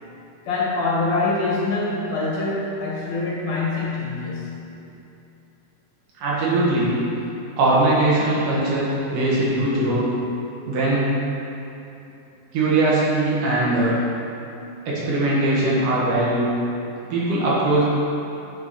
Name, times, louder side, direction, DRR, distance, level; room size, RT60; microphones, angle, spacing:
voice 1, 0.4-4.5, left 3 dB, 60° left, -6 dB, 2.9 m, -24 dB
voice 2, 6.2-7.0 7.6-10.1 10.7-11.2 12.5-14.0 14.9-16.5 17.1-17.8, right 2 dB, 75° right, -7 dB, 3.2 m, -20 dB
9.7 x 4.8 x 4.3 m, 2.9 s
omnidirectional pair, 3.7 m